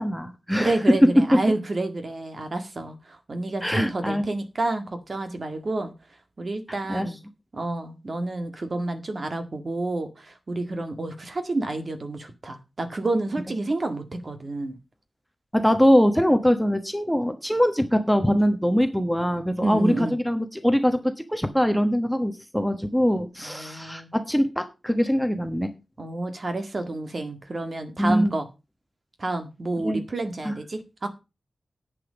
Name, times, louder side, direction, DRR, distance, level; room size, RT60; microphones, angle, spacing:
voice 1, 0.0-0.8 3.6-4.2 6.9-7.1 15.5-25.7 28.0-28.3 29.8-30.0 30.4-30.5, equal, ahead, 6 dB, 1.2 m, -23 dB
voice 2, 0.6-5.9 6.4-7.2 7.5-14.8 19.6-20.2 23.4-24.1 26.0-28.5 29.2-31.1, right 2 dB, 40° right, 7 dB, 1.8 m, -29 dB
10.5 x 8.0 x 5.2 m, 0.28 s
wide cardioid pair, 145°, 0 cm